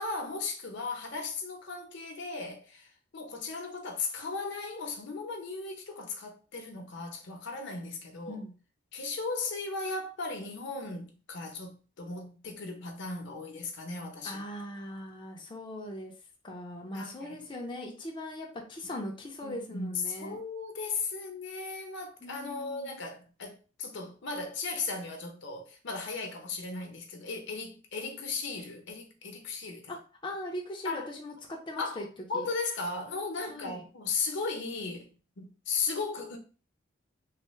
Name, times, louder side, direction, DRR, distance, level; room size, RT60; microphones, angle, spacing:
voice 1, 0.0-8.4 8.9-14.4 16.9-17.4 19.0-19.1 19.4-29.9 30.8-31.1 31.8-32.0 32.3-36.4, left 4 dB, 65° left, 0.7 m, -36 dB
voice 2, 14.2-16.1 16.4-20.4 22.2-22.9 29.9-30.0 30.2-32.1 32.3-32.5 33.5-33.8, left 1 dB, 25° left, 0.5 m, -40 dB
3.2 x 2.0 x 3.0 m
head